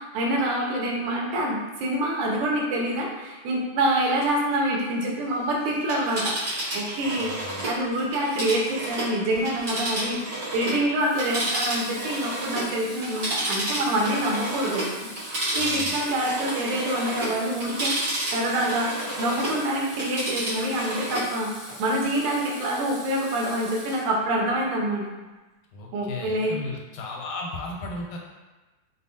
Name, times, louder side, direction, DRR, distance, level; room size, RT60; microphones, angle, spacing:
voice 1, 0.0-6.4 6.7-14.9 15.3-25.1 25.9-26.5, right 1 dB, 85° right, -1 dB, 2.2 m, -26 dB
Telephone, 5.8-10.8 11.1-19.6 19.9-21.3 21.7-21.8, right 1 dB, 65° right, 1.1 m, -31 dB
voice 2, 7.0-7.7 15.6-15.9 25.7-28.2, left 2 dB, 85° left, 0 dB, 2.1 m, -36 dB
Water tap faucet / Sink (filling or washing), 9.3-9.7 11.0-24.4, right 1 dB, 45° right, 1.3 m, -43 dB
5.4 x 2.0 x 2.7 m, 1.2 s
omnidirectional pair, 3.6 m